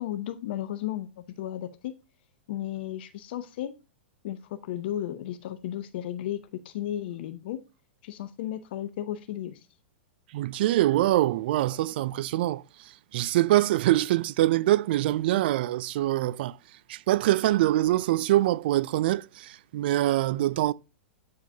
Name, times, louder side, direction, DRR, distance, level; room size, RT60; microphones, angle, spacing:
voice 1, 0.0-1.9 2.5-3.7 4.2-7.6 8.0-9.6, left 12 dB, 60° left, 0.7 m, -34 dB
voice 2, 10.3-12.6 13.1-16.6 16.9-20.7, right 15 dB, 60° right, 0.3 m, -24 dB
8.8 x 4.7 x 2.7 m
hypercardioid pair, 110°, 6 cm